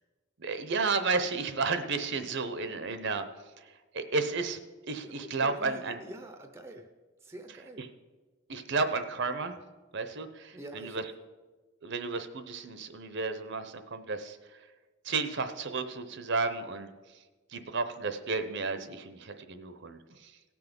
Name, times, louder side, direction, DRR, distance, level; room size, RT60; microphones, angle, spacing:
voice 1, 0.4-3.2 3.9-4.6 4.9-6.0 7.8-7.9 8.5-9.6 9.9-11.0 11.8-14.6 15.0-16.9 17.5-20.3, right 4 dB, 50° right, 10 dB, 0.7 m, -32 dB
voice 2, 5.0-6.9 7.2-7.9 10.5-11.1, right 1 dB, 10° right, 6 dB, 0.6 m, -46 dB
17.0 x 6.1 x 5.2 m, 1.3 s
head